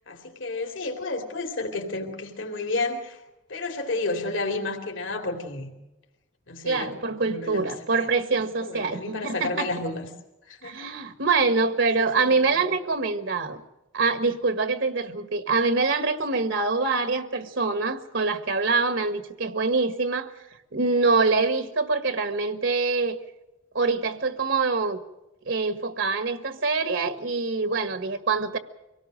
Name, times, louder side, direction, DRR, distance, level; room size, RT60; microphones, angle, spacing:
voice 1, 0.1-3.2 3.5-5.7 6.5-6.9 7.2-8.1 8.6-10.1 10.5-10.8 12.0-12.4, left 2 dB, 75° left, 3 dB, 2.9 m, -31 dB
voice 2, 6.6-9.7 10.6-13.6 13.9-20.3 20.7-23.2 23.7-25.0 25.5-28.6, right 4 dB, 75° right, 9 dB, 1.5 m, -25 dB
25.0 x 18.0 x 6.5 m, 0.98 s
head